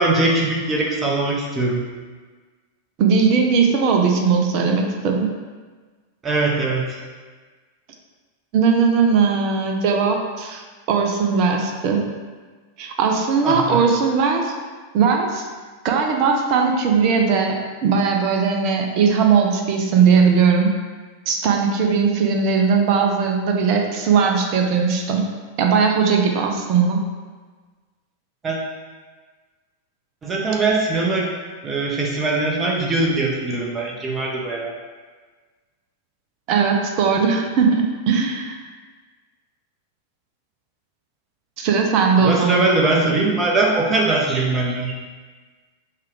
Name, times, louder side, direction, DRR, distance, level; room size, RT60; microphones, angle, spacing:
voice 1, 0.0-1.8 6.2-7.0 13.4-13.8 28.4-28.6 30.2-31.3 31.6-34.7 42.2-44.9, right 2 dB, 20° right, -1 dB, 0.9 m, -21 dB
voice 2, 3.0-5.3 8.5-10.6 10.9-12.0 12.8-14.5 14.9-15.5 15.8-20.7 21.3-25.2 25.6-27.0 36.5-38.5 41.6-42.6, right 5 dB, 40° right, 2 dB, 0.5 m, -18 dB
5.6 x 2.4 x 3.3 m, 1.4 s
figure-of-eight pair, 90°, 0 cm